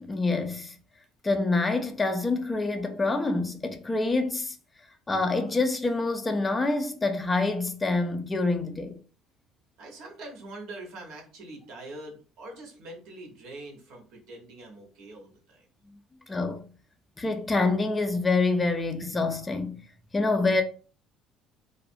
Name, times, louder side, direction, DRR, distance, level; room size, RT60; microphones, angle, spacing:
voice 1, 0.0-0.8 1.2-4.6 5.1-9.0 16.3-16.6 17.2-19.8 20.1-20.6, left 3 dB, 15° left, 0.3 m, -26 dB
voice 2, 9.8-15.6, right 2 dB, 70° right, 1.0 m, -44 dB
2.4 x 2.3 x 2.6 m
cardioid pair, 135°, 0 cm